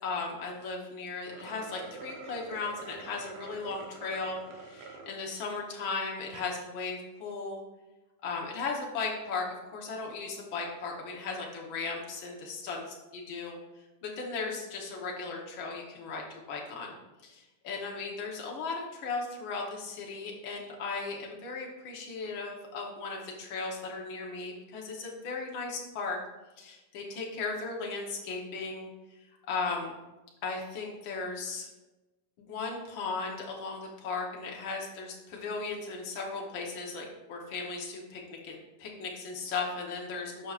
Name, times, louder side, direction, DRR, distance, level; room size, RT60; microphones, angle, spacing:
voice 1, 0.0-7.6 8.2-9.5 9.7-13.6 14.0-16.9 17.2-26.2 26.6-28.9 29.5-29.9 30.4-31.7 32.4-40.5, left 4 dB, 80° left, -1 dB, 1.1 m, -36 dB
sound 1, 1.2-5.1 5.6-5.7 6.2-6.5, right 4 dB, 85° right, 1.3 m, -46 dB
11.5 x 5.8 x 2.5 m, 1.1 s
omnidirectional pair, 3.9 m